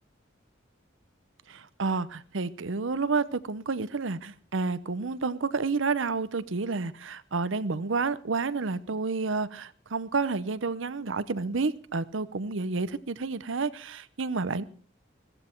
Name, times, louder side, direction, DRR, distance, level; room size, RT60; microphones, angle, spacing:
voice 1, 1.5-14.6, right 4 dB, 80° right, 0.8 m, -30 dB
15.0 x 14.5 x 4.5 m
head